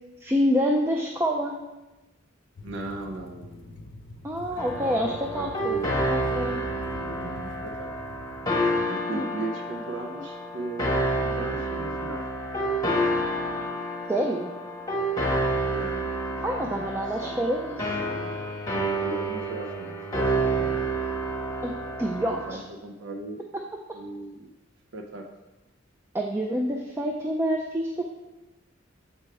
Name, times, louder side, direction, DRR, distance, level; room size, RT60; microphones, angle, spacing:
voice 1, 0.2-1.6 4.2-5.8 6.1-6.6 9.1-9.3 14.1-14.5 16.4-17.9 21.6-21.7 22.0-22.6 26.1-28.0, equal, 15° right, 0 dB, 0.4 m, -27 dB
sound 1, 2.6-8.9, left 2 dB, 70° left, 0.5 m, -45 dB
voice 2, 2.6-3.8 4.4-4.6 5.0-6.0 6.8-7.9 8.8-12.2 15.7-17.4 17.6-18.4 18.8-20.8 22.0-22.1 22.5-23.5 23.9-24.5 24.9-25.2, right 2 dB, 75° right, 3 dB, 0.5 m, -38 dB
sound 2, 4.6-22.5, right 1 dB, 20° left, 1.2 m, -29 dB
6.9 x 4.6 x 3.3 m, 1.1 s
head